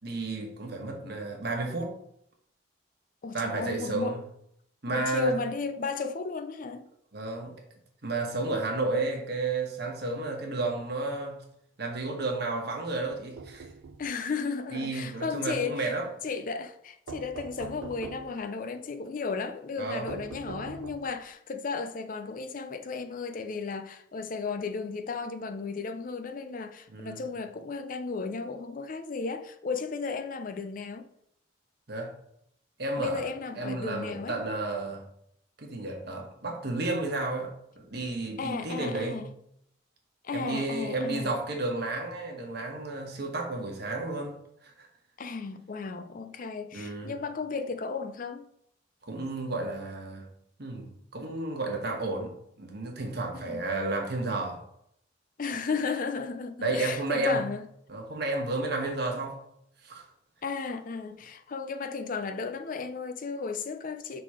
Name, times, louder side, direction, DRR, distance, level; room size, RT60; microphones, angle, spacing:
voice 1, 0.0-2.0 3.3-4.2 4.8-5.4 7.1-7.5 8.0-11.4 11.8-13.7 14.7-16.1 19.8-20.1 26.9-27.3 31.9-32.2 32.8-33.2 33.6-35.0 35.6-39.2 40.3-44.4 44.6-44.9 46.7-47.1 49.1-50.3 50.6-52.3 52.6-54.6 56.6-57.5 57.9-59.4 59.8-60.1, right 2 dB, 55° right, 1.3 m, -32 dB
voice 2, 3.2-4.2 4.9-6.9 14.0-15.9 16.2-31.1 33.0-34.4 38.4-39.3 40.2-41.3 45.2-48.5 53.3-53.6 55.4-57.6 60.4-64.2, left 4 dB, 40° left, 0.4 m, -34 dB
sound 1, 13.1-14.1 17.1-18.4 20.1-21.2, right 4 dB, 85° right, 0.5 m, -43 dB
5.7 x 3.9 x 4.8 m
head